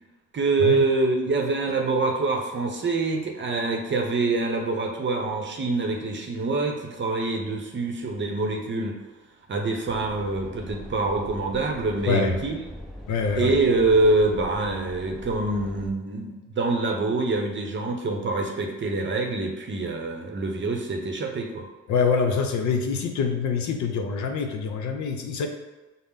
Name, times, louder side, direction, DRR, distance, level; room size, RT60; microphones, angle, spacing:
voice 1, 0.3-9.0 9.5-12.6 13.3-21.7, right 3 dB, 40° right, 3 dB, 0.7 m, -25 dB
sound 1, 9.9-15.9, left 1 dB, ahead, 0.4 m, -41 dB
voice 2, 12.1-12.4 13.1-13.5 21.9-25.5, left 5 dB, 70° left, 4 dB, 0.7 m, -25 dB
5.6 x 2.0 x 3.6 m, 1.2 s
cardioid pair, 90°, 30 cm